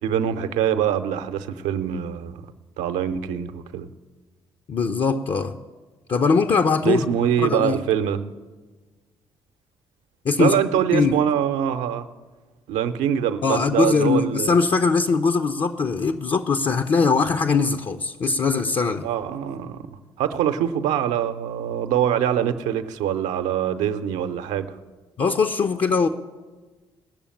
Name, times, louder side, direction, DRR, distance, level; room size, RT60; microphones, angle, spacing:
voice 1, 0.0-2.4 2.8-3.9 6.8-8.2 10.4-12.1 12.7-14.5 19.0-24.8, right 9 dB, 65° right, 0.7 m, -24 dB
voice 2, 4.7-5.5 6.1-7.0 7.4-7.8 10.2-10.6 10.9-11.1 13.4-19.1 25.2-26.1, left 4 dB, 40° left, 0.7 m, -21 dB
18.0 x 7.0 x 8.8 m
figure-of-eight pair, 40°, 13 cm